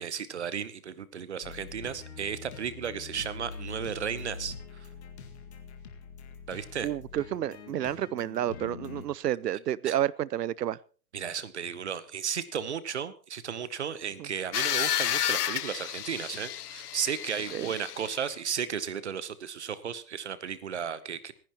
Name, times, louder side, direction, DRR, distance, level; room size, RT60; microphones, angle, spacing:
voice 1, 0.0-4.5 6.5-6.9 9.8-9.9 11.1-21.3, right 8 dB, 45° right, 0.9 m, -34 dB
sound 1, 1.4-9.0, left 5 dB, 40° left, 2.0 m, -44 dB
voice 2, 6.8-10.8 14.2-14.3 17.5-17.7, right 12 dB, 70° right, 0.7 m, -30 dB
sound 2, 14.5-18.3, left 11 dB, 65° left, 0.8 m, -31 dB
26.0 x 10.5 x 3.0 m
hypercardioid pair, 175°, 50 cm